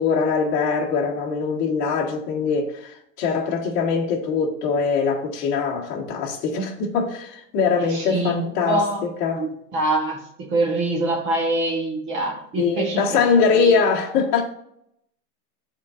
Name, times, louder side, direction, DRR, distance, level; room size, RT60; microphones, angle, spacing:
voice 1, 0.0-9.4 12.6-14.4, left 5 dB, 30° left, 1.4 m, -22 dB
voice 2, 7.9-8.3 8.6-9.0 9.4-10.2 10.5-13.2 13.5-13.7, right 2 dB, 25° right, 1.4 m, -24 dB
11.5 x 4.0 x 2.5 m
supercardioid pair, 155°, 48 cm